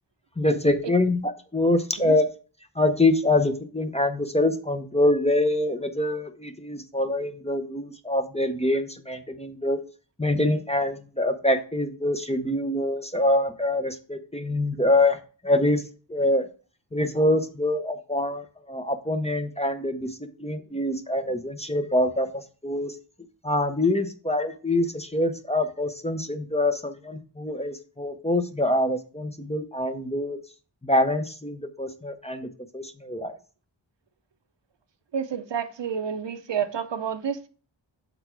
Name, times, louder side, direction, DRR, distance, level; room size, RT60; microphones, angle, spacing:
voice 1, 0.4-2.3 2.8-9.8 10.2-15.2 15.4-15.8 16.1-16.5 16.9-22.9 23.4-30.4 30.8-33.3, left 1 dB, 15° left, 7 dB, 0.6 m, -25 dB
voice 2, 35.1-37.5, right 7 dB, 70° right, 10 dB, 0.7 m, -29 dB
6.9 x 4.1 x 4.4 m, 0.38 s
wide cardioid pair, 60°, 45 cm